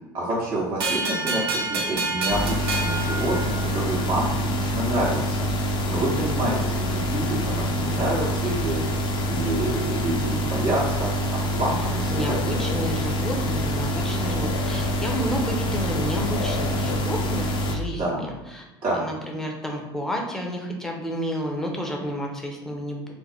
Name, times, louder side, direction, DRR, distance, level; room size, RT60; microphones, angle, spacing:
voice 1, 0.1-5.5 5.8-12.6 17.9-18.3 18.8-19.0, right 1 dB, 40° right, -6 dB, 1.0 m, -28 dB
sound 1, 0.8-4.0, right 3 dB, 80° right, 0.7 m, -28 dB
sound 2, 2.3-17.8, equal, 40° left, 0.7 m, -26 dB
sound 3, 12.1-17.3, left 4 dB, 80° left, 0.4 m, -36 dB
voice 2, 12.1-18.6 18.9-23.1, equal, 5° left, 0 dB, 0.8 m, -31 dB
3.4 x 2.1 x 4.1 m, 1.1 s
hypercardioid pair, 80°, 13 cm